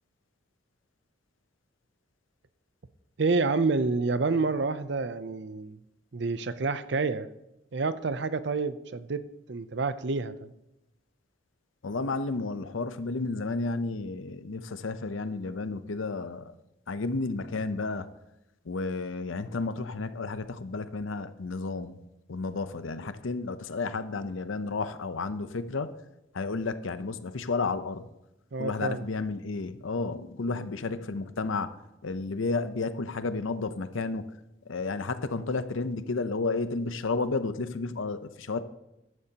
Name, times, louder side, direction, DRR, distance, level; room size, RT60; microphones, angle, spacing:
voice 1, 3.2-5.8 6.1-7.3 7.7-9.2 9.5-10.5 28.5-29.0, right 3 dB, 65° right, 13 dB, 0.6 m, -28 dB
voice 2, 11.8-16.5 16.9-18.1 18.7-22.0 22.3-25.9 26.3-28.1 28.6-31.7 32.0-34.3 34.7-38.6, left 3 dB, 90° left, 11 dB, 0.7 m, -32 dB
14.0 x 11.0 x 2.9 m, 0.89 s
head